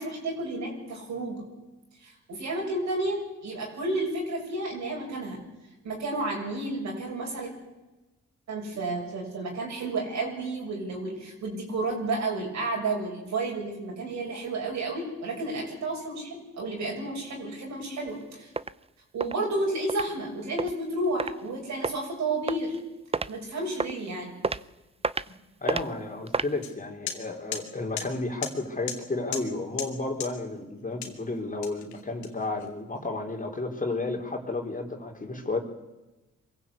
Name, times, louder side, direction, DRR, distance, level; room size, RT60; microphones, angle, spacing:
voice 1, 0.0-1.5 2.0-5.4 5.8-7.5 8.5-18.5 19.1-22.8 23.3-24.4, right 2 dB, 75° right, 0 dB, 7.2 m, -31 dB
sound 1, 18.1-18.2 18.6-18.7 19.2-19.3 19.9-20.0 20.6-20.7 21.2-21.3 21.8-22.0 22.5-22.8 23.1-23.3 23.8-24.0 24.4-24.6 25.0-25.3 25.7-25.8 26.3-26.5, right 4 dB, 20° right, 0.6 m, -29 dB
voice 2, 25.6-35.6, left 2 dB, 30° left, 2 dB, 3.6 m, -32 dB
sound 2, 26.6-26.7 27.1-27.2 27.5-27.6 28.0-28.1 28.4-28.5 28.9-29.0 29.3-29.5 29.8-29.9 30.2-30.3 31.0-31.2 31.6-32.6, left 8 dB, 80° left, 2.1 m, -34 dB
23.5 x 15.5 x 8.5 m, 1.1 s
supercardioid pair, 55°, 29 cm